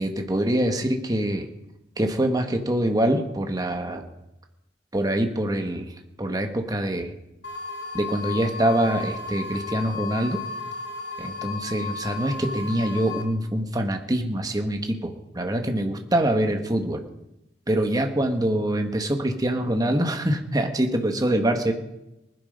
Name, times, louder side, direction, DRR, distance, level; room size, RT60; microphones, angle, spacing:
voice 1, 0.0-1.5 2.0-4.0 4.9-5.9 6.2-7.1 7.9-10.4 11.2-17.0 17.7-21.7, right 1 dB, 20° right, 4 dB, 1.5 m, -24 dB
sound 1, 7.4-13.2, left 4 dB, 85° left, 3.3 m, -34 dB
19.5 x 11.0 x 5.3 m, 0.92 s
head